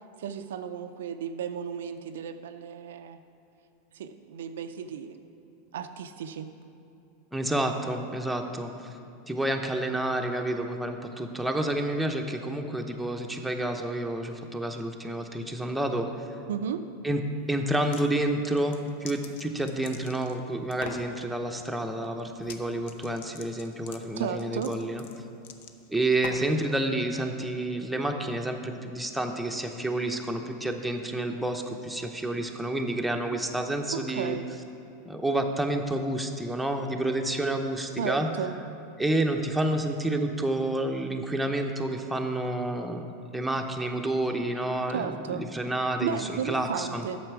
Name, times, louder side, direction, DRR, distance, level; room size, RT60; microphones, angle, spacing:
voice 1, 0.2-3.2 3.9-5.2 5.7-6.5 16.5-16.8 24.2-24.7 33.3-33.4 33.9-34.5 38.0-38.6 44.9-45.4 46.0-47.2, right 8 dB, 75° right, 8 dB, 0.4 m, -34 dB
voice 2, 7.3-8.9 9.3-16.1 17.0-17.2 17.5-25.0 25.9-34.4 35.1-38.3 39.0-43.1 43.3-47.1, right 1 dB, 5° right, 3 dB, 0.7 m, -29 dB
sound 1, 17.7-18.1 18.5-20.4 20.7-21.1 22.4-22.6 22.9-26.6, left 7 dB, 65° left, 0.6 m, -43 dB
8.9 x 6.6 x 4.7 m, 2.7 s
hypercardioid pair, 95°, 0 cm